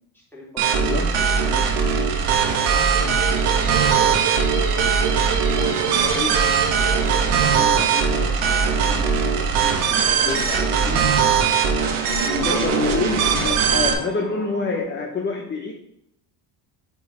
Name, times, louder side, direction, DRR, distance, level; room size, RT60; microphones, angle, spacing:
voice 1, 0.1-2.0 2.4-4.9 5.5-5.7 6.2-6.3 6.8-11.1 11.8-12.7, left 2 dB, 5° left, -4 dB, 2.2 m, -38 dB
sound 1, 0.6-13.9, right 6 dB, 75° right, 1.2 m, -20 dB
voice 2, 0.7-1.2 3.0-3.2 5.8-6.6 10.0-10.4 12.4-15.7, left 3 dB, 25° left, 1 dB, 0.8 m, -27 dB
sound 2, 1.9-8.3, right 7 dB, 55° right, 1.3 m, -30 dB
sound 3, 5.6-14.8, right 4 dB, 25° right, 0.8 m, -39 dB
8.8 x 3.1 x 4.2 m, 0.76 s
cardioid pair, 110°, 48 cm